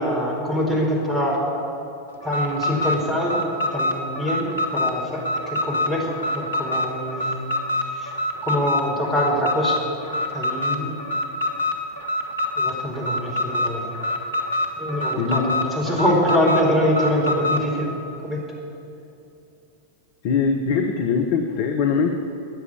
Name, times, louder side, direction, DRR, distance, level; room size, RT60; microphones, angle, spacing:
voice 1, 0.0-1.4 2.2-3.4 3.7-4.5 4.7-7.4 7.9-8.1 8.4-9.8 10.3-10.9 12.6-13.9 14.8-17.9 18.2-18.4, equal, 10° right, -2 dB, 4.5 m, -24 dB
Alarm, 2.2-17.7, left 1 dB, 75° left, 1.7 m, -26 dB
voice 2, 15.2-15.5 20.2-22.1, left 5 dB, 50° left, 4 dB, 1.1 m, -22 dB
13.5 x 9.7 x 9.7 m, 2.7 s
figure-of-eight pair, 90°, 0 cm